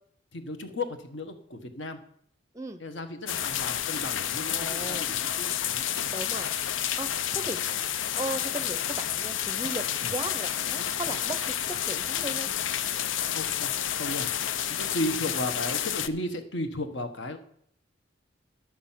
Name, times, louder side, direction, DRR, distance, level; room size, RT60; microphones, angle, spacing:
voice 1, 0.3-2.0 2.8-5.9 7.1-7.4 10.0-10.1 13.3-14.3 14.7-17.4, left 1 dB, 70° left, 8 dB, 1.3 m, -35 dB
sound 1, 3.3-16.1, left 10 dB, 85° left, 0.5 m, -30 dB
voice 2, 4.5-5.1 6.1-6.5 7.0-7.6 8.1-12.5 15.0-15.3, right 2 dB, 15° right, 10 dB, 0.6 m, -37 dB
11.5 x 6.2 x 7.4 m, 0.67 s
head